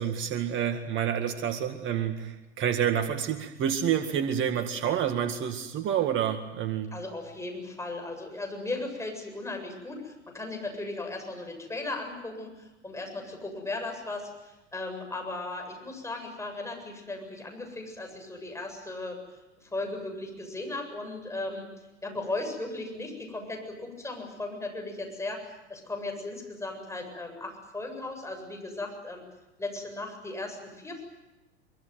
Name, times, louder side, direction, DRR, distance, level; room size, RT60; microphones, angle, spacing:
voice 1, 0.0-6.9, right 9 dB, 35° right, 7 dB, 2.0 m, -28 dB
voice 2, 6.9-19.2 19.6-21.7 22.0-29.2 29.6-31.0, left 2 dB, 10° left, 3 dB, 7.7 m, -37 dB
24.0 x 23.5 x 9.4 m, 1.0 s
hypercardioid pair, 100°, 35 cm